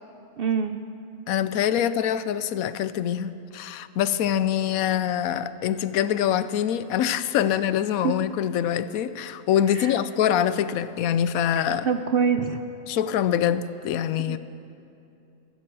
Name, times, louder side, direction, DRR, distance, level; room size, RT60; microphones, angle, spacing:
voice 1, 0.4-0.8 8.0-8.1 9.7-9.9 11.8-12.6 14.3-14.4, right 6 dB, 60° right, 8 dB, 0.6 m, -24 dB
voice 2, 1.3-11.9 12.9-14.4, left 10 dB, 85° left, 14 dB, 1.0 m, -24 dB
26.5 x 9.7 x 4.7 m, 2.7 s
omnidirectional pair, 1.5 m